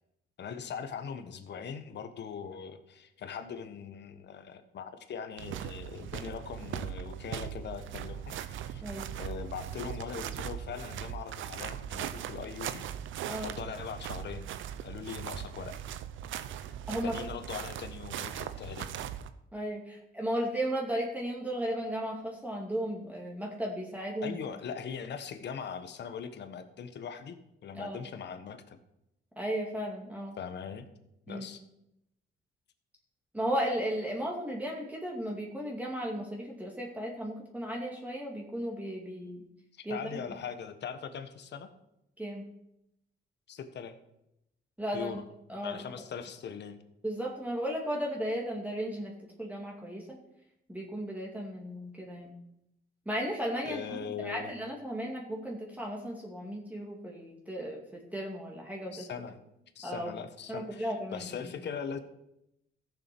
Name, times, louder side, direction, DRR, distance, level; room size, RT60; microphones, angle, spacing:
voice 1, 0.4-8.4 8.6-8.8 9.2-12.8 13.4-14.5 14.8-15.8 17.0-19.1 24.2-28.8 30.4-30.9 31.3-31.6 39.9-41.7 43.5-43.9 44.9-45.2 45.6-46.8 53.6-54.5 58.9-59.4 59.7-62.0, left 7 dB, 60° left, 9 dB, 1.4 m, -41 dB
sound 1, 5.4-19.3, right 10 dB, 80° right, 0.7 m, -39 dB
voice 2, 8.8-9.1 13.3-13.5 16.9-17.2 19.5-24.4 27.7-28.0 29.4-30.4 31.3-31.5 33.3-39.4 39.8-40.2 42.2-42.4 44.8-45.1 45.5-45.8 47.0-50.2 50.7-52.4 53.1-59.1 59.8-60.1 60.5-61.3, equal, 10° right, -2 dB, 2.4 m, -35 dB
14.0 x 7.1 x 6.1 m, 0.83 s
cardioid pair, 90°, 20 cm